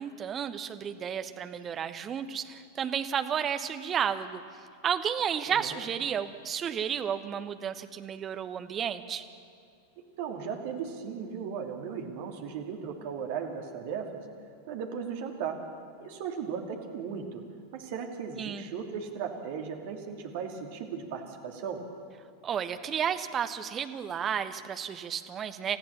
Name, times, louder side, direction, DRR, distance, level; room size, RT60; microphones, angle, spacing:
voice 1, 0.0-4.4 4.8-9.2 18.4-18.7 22.4-25.8, right 8 dB, 25° right, 9 dB, 1.2 m, -32 dB
voice 2, 5.5-5.8 10.2-14.2 14.7-15.6 16.0-17.4 17.7-21.8, right 6 dB, 50° right, 2 dB, 2.8 m, -36 dB
29.5 x 15.0 x 7.1 m, 2.3 s
figure-of-eight pair, 90°, 0 cm